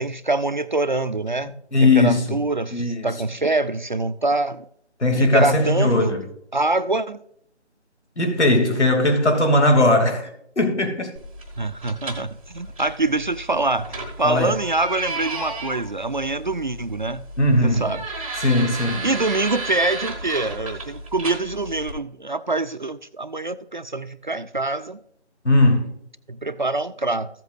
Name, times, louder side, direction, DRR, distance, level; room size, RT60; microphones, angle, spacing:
voice 1, 0.0-1.5 1.8-4.6 5.2-6.2 6.5-7.2 11.6-17.2 17.6-18.0 19.0-25.0 26.3-27.3, right 2 dB, 45° right, 0.4 m, -25 dB
voice 2, 1.7-2.4 2.7-3.1 5.0-6.2 8.2-10.3 10.6-11.1 14.2-14.5 17.4-17.9 18.4-19.1 25.4-25.9, left 2 dB, 75° left, 3.0 m, -18 dB
sound 1, 11.2-21.9, right 3 dB, 10° right, 0.8 m, -34 dB
14.5 x 8.0 x 2.6 m
figure-of-eight pair, 165°, 34 cm